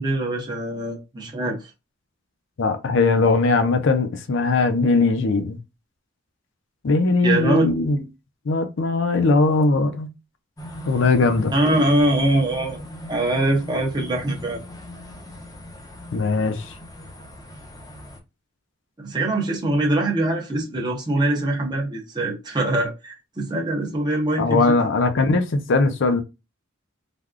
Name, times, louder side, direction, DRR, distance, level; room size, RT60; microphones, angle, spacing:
voice 1, 0.0-1.7 7.2-7.7 11.5-12.8 13.1-14.6 19.0-24.7, right 1 dB, 20° right, 0.6 m, -23 dB
voice 2, 2.6-5.6 6.8-8.0 8.5-10.1 10.9-11.5 16.1-16.6 24.4-26.2, left 3 dB, 65° left, 0.5 m, -20 dB
sound 1, 10.6-18.2, equal, 20° left, 0.6 m, -39 dB
3.4 x 2.3 x 2.4 m
head